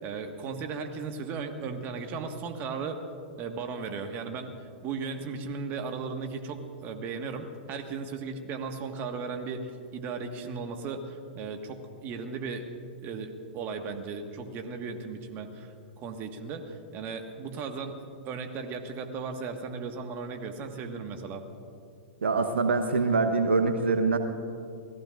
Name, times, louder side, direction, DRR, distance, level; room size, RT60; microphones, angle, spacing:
voice 1, 0.0-3.0 3.4-12.6 13.0-21.4, right 4 dB, 35° right, 5 dB, 1.6 m, -36 dB
voice 2, 22.2-24.2, right 4 dB, 80° right, 6 dB, 1.0 m, -24 dB
28.5 x 18.0 x 2.6 m, 2.5 s
hypercardioid pair, 110°, 6 cm